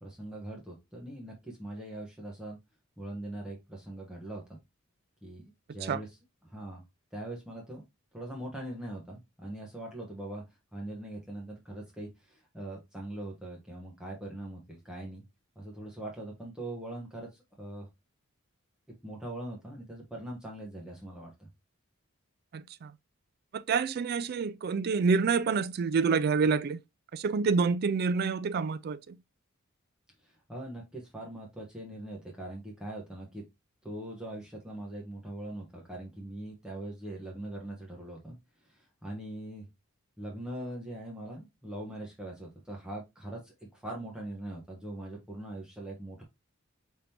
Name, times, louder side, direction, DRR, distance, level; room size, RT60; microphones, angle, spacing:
voice 1, 0.0-2.6 3.0-4.4 5.2-6.1 6.5-6.8 7.1-7.8 8.1-10.4 10.7-15.2 15.6-17.3 17.6-17.9 19.0-21.3 30.5-33.4 33.8-38.4 39.0-39.6 40.2-46.2, right 1 dB, 5° right, 1.1 m, -41 dB
voice 2, 22.5-22.9 23.5-26.8 27.1-29.2, right 5 dB, 45° right, 0.3 m, -27 dB
5.0 x 3.6 x 2.8 m
head